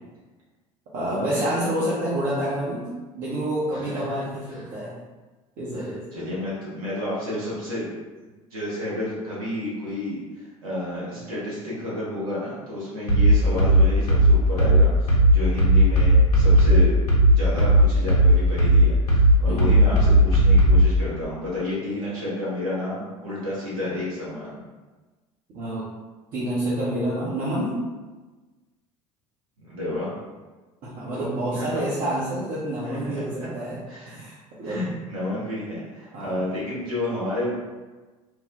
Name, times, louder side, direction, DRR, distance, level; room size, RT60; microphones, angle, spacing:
voice 1, 0.9-2.9 3.1-4.9 5.6-6.0 19.5-19.8 25.5-25.9 26.3-27.8 30.8-33.8 34.1-34.8 36.1-36.4, right 1 dB, 45° right, -8 dB, 0.7 m, -28 dB
voice 2, 3.7-4.1 4.5-4.6 5.7-7.9 8.5-16.9 17.4-24.6 29.6-30.1 31.1-31.8 32.8-33.0 33.9-34.2 34.6-37.5, left 1 dB, 70° right, -8 dB, 0.9 m, -31 dB
sound 1, 13.1-20.9, right 1 dB, 80° left, 0.6 m, -16 dB
3.0 x 2.0 x 2.3 m, 1.2 s
figure-of-eight pair, 65°, 19 cm